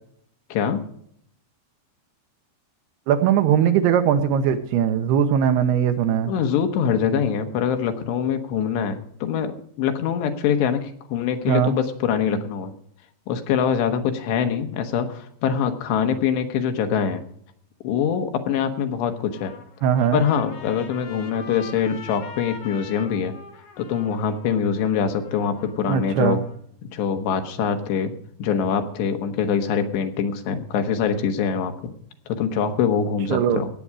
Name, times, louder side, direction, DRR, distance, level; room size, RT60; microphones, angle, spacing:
voice 1, 0.5-0.8 6.2-12.7 13.3-17.2 17.8-19.5 20.1-23.3 23.8-26.4 26.8-28.1 28.4-31.7 32.3-33.7, left 7 dB, 75° left, 6 dB, 3.4 m, -24 dB
voice 2, 3.1-6.3 11.5-11.8 19.8-20.2 25.9-26.4 33.3-33.6, right 8 dB, 80° right, 8 dB, 2.7 m, -20 dB
Trumpet, 19.1-26.6, left 4 dB, 55° left, 3.3 m, -43 dB
18.5 x 8.6 x 4.8 m, 0.67 s
omnidirectional pair, 5.1 m